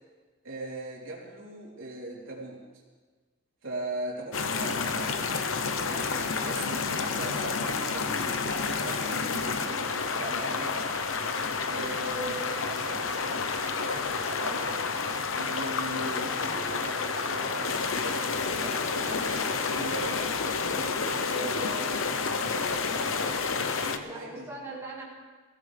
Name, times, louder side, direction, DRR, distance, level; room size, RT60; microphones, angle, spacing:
voice 1, 0.4-2.6 3.6-10.9 11.7-13.5 13.8-14.7 15.3-18.3 18.6-20.3 21.0-23.2 23.8-24.5, right 1 dB, 80° right, -4 dB, 3.6 m, -39 dB
sound 1, 4.3-24.0, left 4 dB, 85° left, 0.9 m, -30 dB
voice 2, 24.0-25.0, right 2 dB, 15° right, -8 dB, 4.1 m, -42 dB
21.0 x 16.0 x 3.5 m, 1.4 s
head